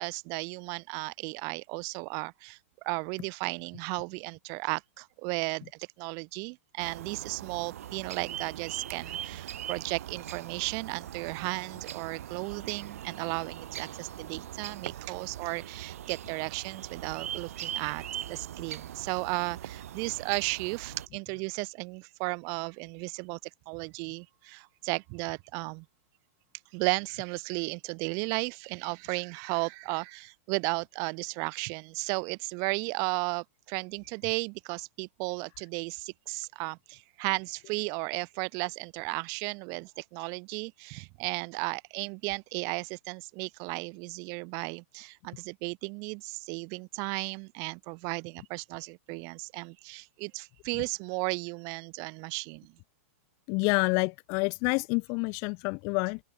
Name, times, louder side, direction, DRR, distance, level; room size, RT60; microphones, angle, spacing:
voice 1, 0.0-2.6 2.8-23.4 23.7-25.8 26.7-52.7, right 34 dB, 45° right, 2.9 m, -34 dB
sound 1, 6.8-21.1, right 11 dB, 75° right, 7.2 m, -41 dB
voice 2, 53.5-56.2, left 33 dB, 40° left, 0.8 m, -28 dB
open air
hypercardioid pair, 135°, 8 cm